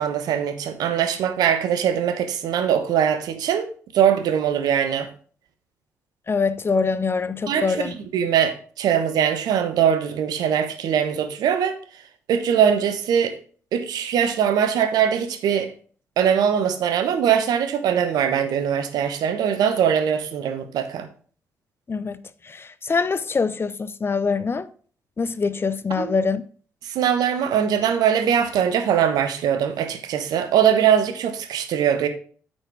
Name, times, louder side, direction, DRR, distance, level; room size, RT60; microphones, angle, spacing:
voice 1, 0.0-3.7 3.9-5.1 7.5-11.8 12.3-13.4 13.7-15.7 16.2-21.1 26.0-26.1 26.8-32.1, right 8 dB, 65° right, 1.0 m, -21 dB
voice 2, 6.3-7.9 21.9-22.2 22.5-24.7 25.2-26.4, left 4 dB, 35° left, 0.7 m, -24 dB
8.8 x 4.5 x 4.8 m
hypercardioid pair, 40°, 7 cm